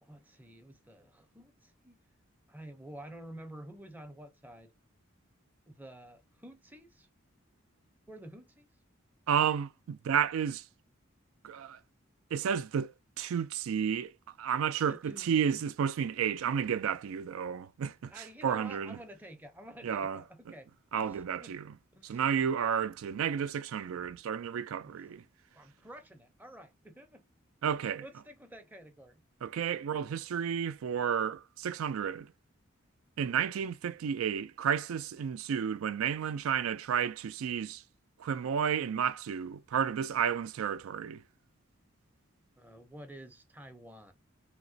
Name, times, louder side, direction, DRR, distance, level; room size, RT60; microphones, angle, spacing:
voice 1, 0.0-2.0 2.5-4.7 5.7-7.1 8.1-8.7 14.9-15.6 18.1-20.7 21.0-21.6 21.9-22.2 24.8-25.1 25.5-27.2 27.8-29.2 42.6-44.1, right 1 dB, 10° right, 0.5 m, -50 dB
voice 2, 9.3-10.6 11.4-11.8 12.3-14.1 14.4-19.0 19.8-20.5 20.9-21.7 22.0-25.2 27.6-28.0 29.4-32.3 33.2-37.8 38.2-41.2, right 8 dB, 90° right, 0.3 m, -32 dB
3.0 x 2.9 x 2.6 m
head